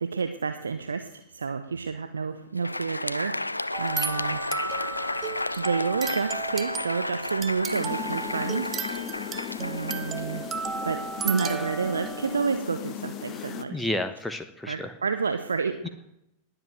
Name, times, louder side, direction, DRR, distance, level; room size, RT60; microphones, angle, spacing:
voice 1, 0.0-3.4 3.8-4.4 5.6-8.7 9.6-10.4 10.9-13.9 14.6-15.9, right 5 dB, 75° right, 9 dB, 0.9 m, -29 dB
Crowd, 2.4-10.9, left 2 dB, 85° left, 0.5 m, -33 dB
sound 1, 3.7-12.6, right 6 dB, 25° right, 0.9 m, -35 dB
sound 2, 7.7-13.6, left 10 dB, 35° left, 1.2 m, -37 dB
voice 2, 13.3-14.9 15.8-15.9, left 1 dB, 5° left, 7 dB, 1.1 m, -32 dB
20.0 x 8.1 x 7.8 m, 0.84 s
figure-of-eight pair, 90°, 0 cm